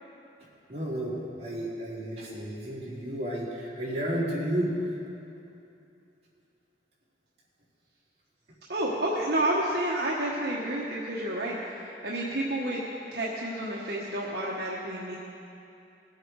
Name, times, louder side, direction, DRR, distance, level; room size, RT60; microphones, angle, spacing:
voice 1, 0.7-4.7, right 1 dB, 40° right, -8 dB, 3.6 m, -32 dB
voice 2, 8.7-11.6 12.0-12.8 13.1-15.2, right 1 dB, 65° right, -5 dB, 1.3 m, -29 dB
20.5 x 8.1 x 4.8 m, 2.7 s
head